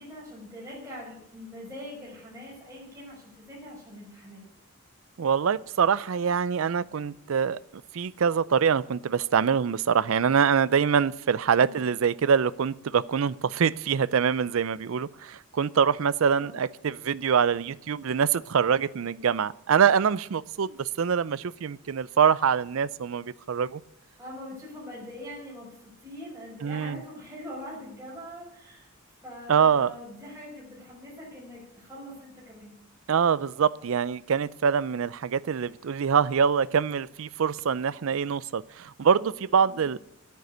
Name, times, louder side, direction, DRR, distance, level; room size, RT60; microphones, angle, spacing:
voice 1, 0.0-4.4 11.6-11.8 16.3-16.6 24.2-28.9 29.2-32.7 39.6-39.9, left 1 dB, 15° right, 6.4 m, -43 dB
voice 2, 5.2-7.6 7.9-23.8 26.6-27.0 29.5-29.9 33.1-40.0, right 7 dB, 65° right, 0.4 m, -24 dB
9.4 x 9.3 x 9.8 m
head